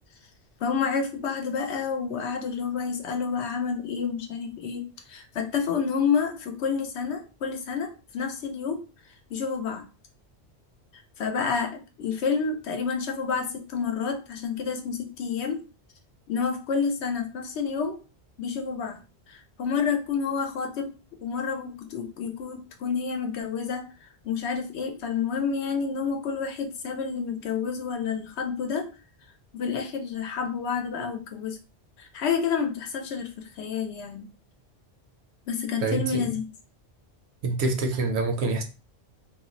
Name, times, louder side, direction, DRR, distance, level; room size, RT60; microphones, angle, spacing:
voice 1, 0.6-8.8 9.3-9.8 11.2-15.6 16.3-18.0 18.4-19.0 19.3-23.8 24.2-28.9 29.5-31.6 32.0-34.3 35.5-36.4, left 6 dB, 75° left, 0.9 m, -29 dB
voice 2, 35.8-36.3 37.4-38.6, right 3 dB, 70° right, 0.8 m, -26 dB
2.4 x 2.1 x 3.7 m
omnidirectional pair, 1.2 m